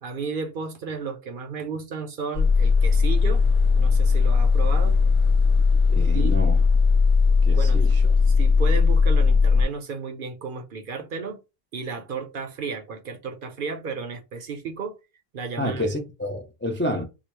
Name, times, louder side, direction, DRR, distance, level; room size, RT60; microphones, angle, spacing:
voice 1, 0.0-3.4 3.8-5.0 6.1-6.3 7.5-7.9 8.3-11.4 11.7-15.0 15.3-15.8, right 5 dB, 60° right, 0.8 m, -33 dB
sound 1, 2.3-9.6, left 4 dB, 55° left, 0.9 m, -18 dB
voice 2, 5.9-6.6 7.4-8.0 15.6-17.0, left 1 dB, 20° left, 0.4 m, -29 dB
4.9 x 2.0 x 3.0 m
omnidirectional pair, 1.1 m